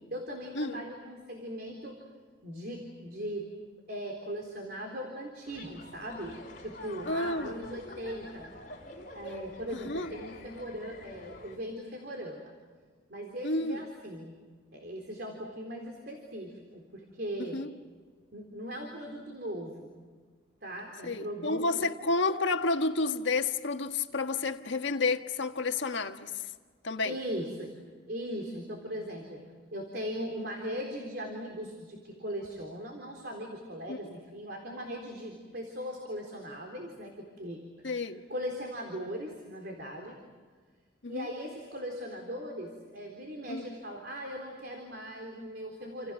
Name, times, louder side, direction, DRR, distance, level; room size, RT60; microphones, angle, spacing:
voice 1, 0.1-2.0 2.4-3.5 3.9-8.5 9.1-12.5 13.1-14.3 14.7-17.6 18.3-19.9 20.6-21.9 27.0-27.7 28.1-29.4 29.7-37.9 38.3-40.2 41.1-46.1, equal, 55° right, 3.9 m, -39 dB
sound 1, 5.4-11.6, left 1 dB, 45° left, 5.0 m, -47 dB
voice 2, 7.1-7.6 9.7-10.1 13.4-13.8 17.4-17.7 21.0-26.5 26.8-27.2 33.9-34.0 37.8-38.2 41.0-41.3 43.5-43.7, left 3 dB, 75° left, 1.5 m, -30 dB
29.5 x 28.5 x 6.4 m
head